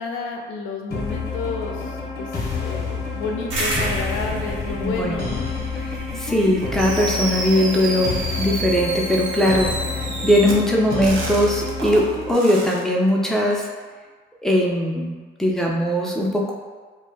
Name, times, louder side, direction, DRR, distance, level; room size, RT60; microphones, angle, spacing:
voice 1, 0.0-2.3 2.6-5.4 6.1-6.4, left 4 dB, 90° left, 2 dB, 0.4 m, -31 dB
sound 1, 0.9-12.3, left 4 dB, 50° left, 0.7 m, -29 dB
sound 2, 3.5-8.4, right 1 dB, 65° right, 0.9 m, -31 dB
voice 2, 4.8-5.2 5.9-13.7 14.4-15.1 15.4-16.5, equal, ahead, -2 dB, 0.4 m, -20 dB
Fireworks, 6.8-12.8, right 2 dB, 90° right, 0.5 m, -30 dB
2.2 x 2.0 x 3.2 m, 1.5 s
cardioid pair, 90°, 20 cm